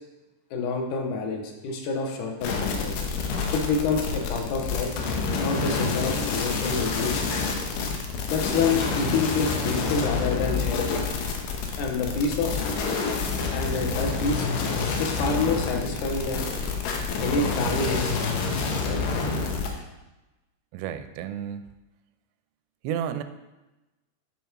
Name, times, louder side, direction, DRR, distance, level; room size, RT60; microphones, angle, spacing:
voice 1, 0.5-2.9 3.5-5.0 5.4-7.3 8.3-11.0 11.8-12.7 13.5-14.5 15.0-16.5 17.2-18.3 18.8-19.0, left 4 dB, 70° left, 1 dB, 1.9 m, -28 dB
sound 1, 2.4-19.7, left 4 dB, 85° left, 3.2 m, -28 dB
voice 2, 20.7-21.7 22.8-23.2, right 9 dB, 85° right, 10 dB, 2.7 m, -31 dB
10.0 x 5.5 x 4.6 m, 1.0 s
omnidirectional pair, 4.9 m